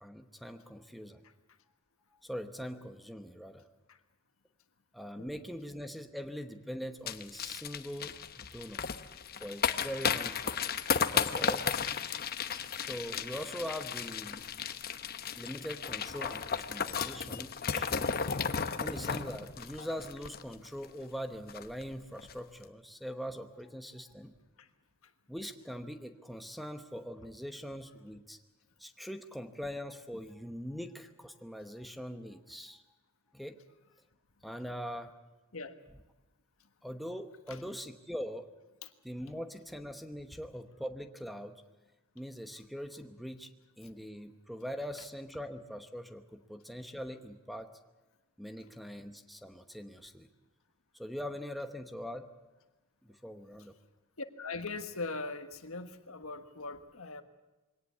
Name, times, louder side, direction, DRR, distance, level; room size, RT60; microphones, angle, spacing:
voice 1, 0.0-1.2 2.2-3.6 4.9-8.9 9.4-10.6 11.1-11.8 12.8-14.4 15.4-18.1 18.8-24.3 25.3-28.4 28.8-32.8 33.3-33.6 34.4-35.1 36.8-38.5 39.0-41.6 42.1-43.5 43.8-47.7 48.4-50.3 50.9-52.3 53.0-53.7, equal, ahead, 7 dB, 1.0 m, -42 dB
sound 1, 7.1-20.9 21.1-21.2 21.5-21.8 22.2-22.3, left 6 dB, 45° left, 0.9 m, -34 dB
voice 2, 18.0-18.5 24.6-24.7 25.0-25.1 35.5-35.7 37.5-37.6 38.8-38.9 54.2-57.2, left 3 dB, 75° left, 8 dB, 1.5 m, -41 dB
22.5 x 18.0 x 8.4 m, 1.1 s
head